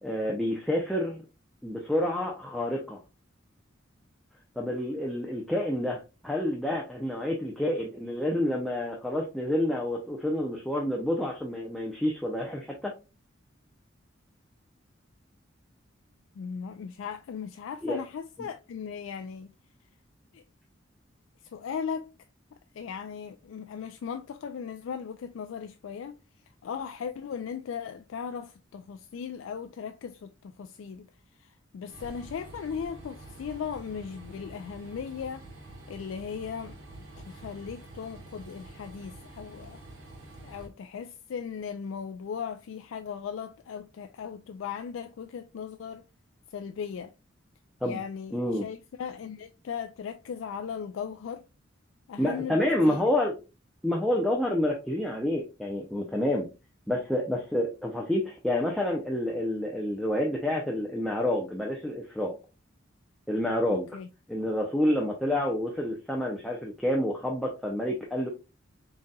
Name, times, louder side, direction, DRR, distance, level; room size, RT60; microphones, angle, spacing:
voice 1, 0.0-1.2 1.6-3.0 4.6-12.9 17.8-18.0 47.8-48.0 48.3-48.7 52.2-53.3 53.8-56.5 56.9-62.3 63.3-63.9 64.3-68.3, left 1 dB, ahead, 0.6 m, -28 dB
voice 2, 16.4-19.5 20.3-20.4 21.5-22.1 22.7-26.1 26.6-31.1 31.4-35.5 35.9-36.7 37.2-39.8 40.4-46.1 46.5-47.1 47.8-51.4 52.1-53.1 63.7-64.1, left 7 dB, 80° left, 0.3 m, -37 dB
Train, 31.9-40.7, right 2 dB, 90° right, 1.2 m, -47 dB
3.9 x 3.9 x 2.3 m
head